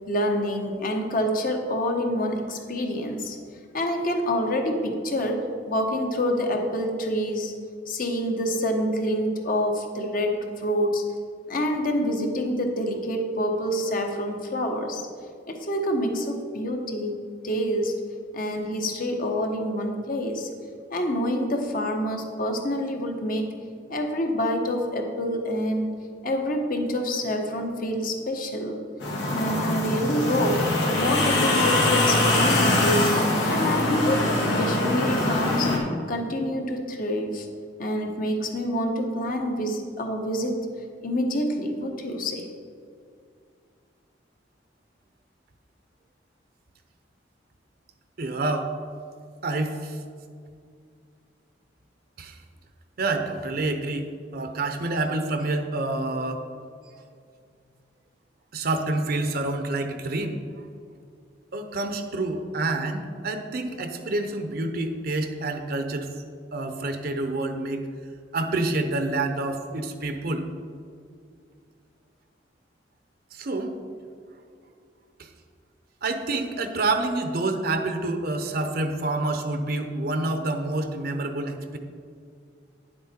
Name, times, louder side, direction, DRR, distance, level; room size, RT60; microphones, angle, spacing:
voice 1, 0.1-3.4 3.7-7.5 7.9-11.0 11.5-15.0 15.5-17.1 17.4-18.0 18.3-20.5 20.9-23.5 23.9-25.9 26.2-28.8 29.3-30.7 31.0-33.1 33.5-35.7 36.1-37.5 37.8-40.7 41.0-42.4, equal, 50° left, 3 dB, 1.2 m, -27 dB
sound 1, 29.0-35.8, left 1 dB, 90° left, 2.0 m, -23 dB
voice 2, 48.2-48.7 49.4-50.0 52.2-52.4 53.0-56.4 58.5-60.4 61.5-66.2 66.5-67.9 68.3-70.5 73.3-73.8 75.2-75.3 76.0-81.8, right 2 dB, 55° right, 6 dB, 0.7 m, -28 dB
9.8 x 7.5 x 4.4 m, 2.2 s
head